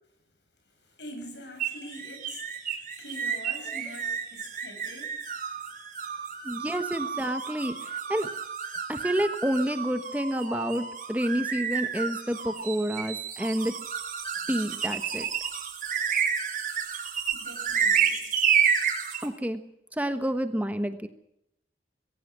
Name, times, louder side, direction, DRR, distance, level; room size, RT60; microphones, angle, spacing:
voice 1, 0.8-5.3 17.3-18.3, left 1 dB, 80° left, 5 dB, 7.2 m, -45 dB
sound 1, 1.6-19.3, right 7 dB, 50° right, 4.6 m, -30 dB
voice 2, 6.4-8.3 8.9-13.7 14.5-15.3 19.2-19.6 19.9-21.1, equal, 10° right, 9 dB, 1.2 m, -29 dB
22.0 x 16.5 x 7.4 m, 0.76 s
head